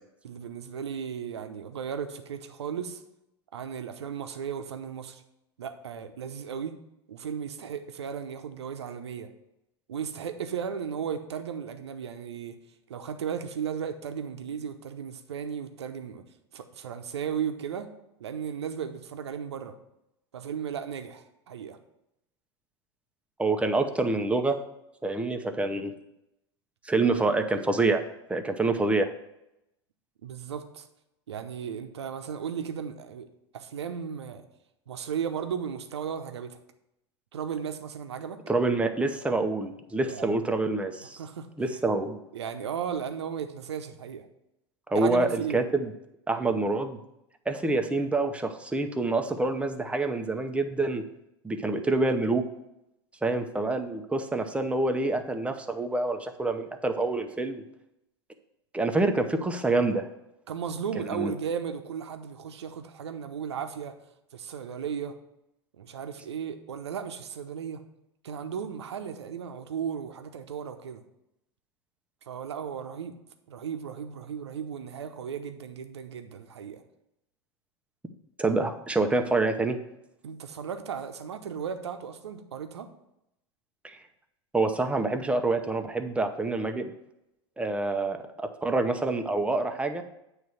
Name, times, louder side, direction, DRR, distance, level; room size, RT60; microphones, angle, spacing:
voice 1, 0.2-3.0 3.5-5.2 5.6-6.8 7.1-9.3 9.9-12.6 12.9-16.2 16.5-17.9 18.2-19.8 20.3-21.8 30.2-30.9 31.3-33.3 33.5-34.4 34.9-36.6 37.3-38.4 40.0-40.7 41.2-41.5 42.3-44.3 44.9-45.6 60.5-64.0 64.3-65.2 65.8-67.8 68.2-71.0 72.3-73.2 73.5-76.8 80.2-82.9, right 7 dB, 75° right, 7 dB, 0.8 m, -35 dB
voice 2, 23.4-24.6 25.0-26.0 26.8-28.0 28.3-29.1 38.5-41.2 41.6-42.2 44.9-45.9 46.3-47.0 47.5-51.0 51.4-52.4 53.2-57.6 58.7-60.0 61.1-61.3 78.4-79.8 83.8-84.0 84.5-86.9 87.6-90.0, right 2 dB, 10° right, 6 dB, 0.8 m, -27 dB
9.1 x 3.2 x 6.3 m, 0.85 s
hypercardioid pair, 85°, 14 cm